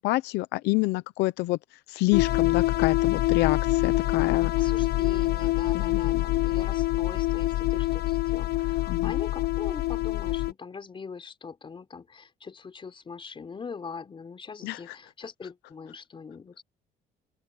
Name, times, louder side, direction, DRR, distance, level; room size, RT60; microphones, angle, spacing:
voice 1, 0.0-1.6 1.9-4.5 5.7-6.2 8.9-9.1 14.6-14.8, left 20 dB, 90° left, 0.7 m, -27 dB
sound 1, 2.1-10.5, left 16 dB, 70° left, 1.0 m, -25 dB
voice 2, 4.6-16.6, left 5 dB, 30° left, 4.1 m, -42 dB
open air
cardioid pair, 110°, 17 cm